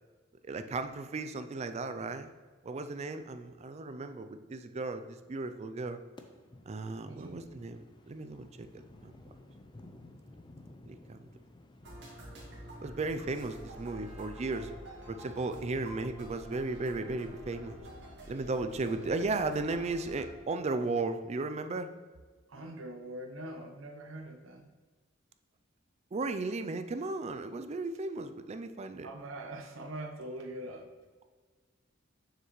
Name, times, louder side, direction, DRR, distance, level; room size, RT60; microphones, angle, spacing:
voice 1, 0.4-2.3 2.6-6.0 6.7-9.1 10.9-11.2 12.8-14.7 15.1-17.8 18.3-21.9 26.1-29.1, right 3 dB, 35° right, 9 dB, 0.4 m, -35 dB
sound 1, 6.2-15.5, left 1 dB, 25° left, 0.5 m, -56 dB
sound 2, 11.8-20.2, right 1 dB, 65° right, 1.8 m, -48 dB
voice 2, 22.5-24.7 29.0-30.9, right 1 dB, 85° right, 4 dB, 0.9 m, -43 dB
7.1 x 6.5 x 3.1 m, 1.4 s
head